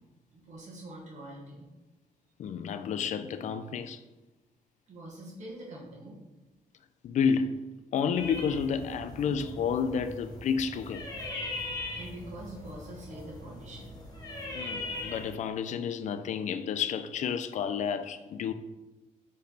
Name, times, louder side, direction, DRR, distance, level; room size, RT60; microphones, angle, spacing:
voice 1, 0.3-1.7 4.9-6.2 11.8-14.0, right 1 dB, 55° right, 1.0 m, -44 dB
voice 2, 2.4-4.0 7.0-7.6 7.9-11.1 14.5-18.5, left 6 dB, 60° left, 0.4 m, -30 dB
sound 1, 8.1-15.3, left 2 dB, 25° left, 1.0 m, -40 dB
4.2 x 3.1 x 4.1 m
cardioid pair, 115°, 14 cm